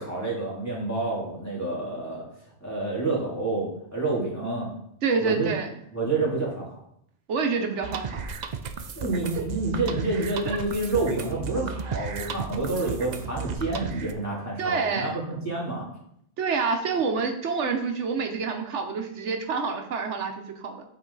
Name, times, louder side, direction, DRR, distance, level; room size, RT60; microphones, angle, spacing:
voice 1, 0.0-2.3 2.6-4.7 5.2-5.5 5.9-6.8 9.0-15.8, right 2 dB, 15° left, -5 dB, 2.7 m, -28 dB
voice 2, 5.0-5.7 7.3-8.2 10.4-10.6 14.6-15.1 16.4-20.8, right 5 dB, 90° right, 4 dB, 1.3 m, -27 dB
sound 1, 7.8-14.1, right 5 dB, 50° right, 0.6 m, -34 dB
8.8 x 4.8 x 3.9 m, 0.71 s
omnidirectional pair, 1.2 m